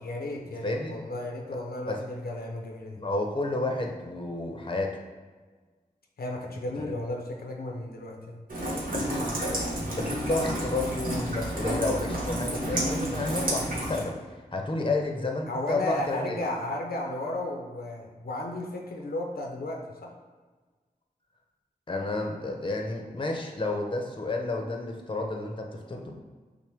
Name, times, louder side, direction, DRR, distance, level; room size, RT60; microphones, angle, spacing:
voice 1, 0.0-3.0 6.2-8.4 15.5-20.1, left 1 dB, 80° left, 0 dB, 0.6 m, -34 dB
voice 2, 3.0-4.9 6.8-6.9 8.9-9.3 9.6-9.7 9.9-16.4 21.9-26.2, left 2 dB, 35° left, 1 dB, 0.6 m, -31 dB
Rain, 8.5-14.0, equal, 65° right, 1.0 m, -30 dB
5.8 x 2.1 x 3.4 m, 1.4 s
wide cardioid pair, 60°, 15 cm